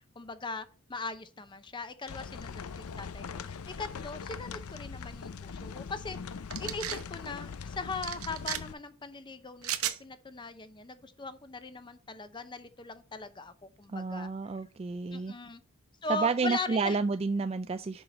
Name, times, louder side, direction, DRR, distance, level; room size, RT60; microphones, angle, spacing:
voice 1, 0.2-6.2 6.6-14.3 15.1-15.6 16.0-17.0, left 3 dB, 20° left, 0.6 m, -40 dB
sound 1, 2.1-8.7, left 5 dB, 90° left, 0.6 m, -41 dB
sound 2, 6.5-7.0 8.0-8.6 9.6-10.0, right 11 dB, 80° right, 0.8 m, -34 dB
voice 2, 13.9-15.3 16.1-18.0, right 4 dB, 30° right, 0.3 m, -30 dB
6.9 x 5.6 x 5.1 m
head